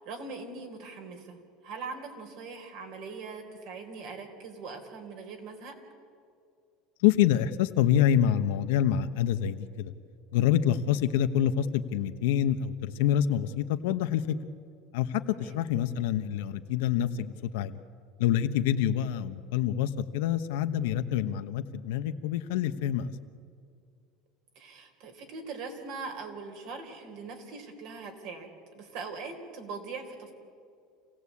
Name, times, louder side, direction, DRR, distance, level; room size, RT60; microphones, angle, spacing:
voice 1, 0.0-5.8 10.9-11.0 15.3-15.6 24.6-30.3, right 4 dB, 65° right, 4 dB, 4.1 m, -41 dB
voice 2, 7.0-9.9 10.3-14.3 14.9-17.8 18.2-23.1, left 10 dB, 85° left, 9 dB, 1.1 m, -26 dB
27.5 x 17.0 x 8.5 m, 2.3 s
supercardioid pair, 135°, 0 cm